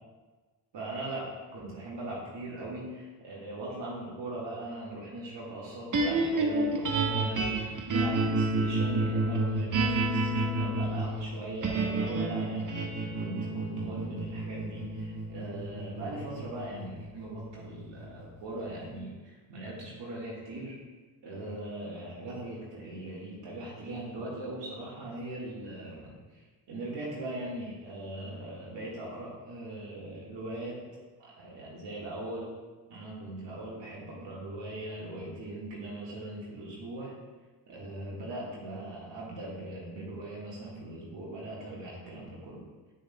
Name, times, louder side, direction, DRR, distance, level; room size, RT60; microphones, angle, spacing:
voice 1, 0.7-20.8 21.2-32.5 32.9-37.1 37.7-42.7, right 2 dB, 65° right, -6 dB, 1.7 m, -40 dB
sound 1, 5.9-18.2, right 2 dB, 45° right, 1.2 m, -30 dB
7.4 x 6.8 x 2.2 m, 1.3 s
supercardioid pair, 45°, 46 cm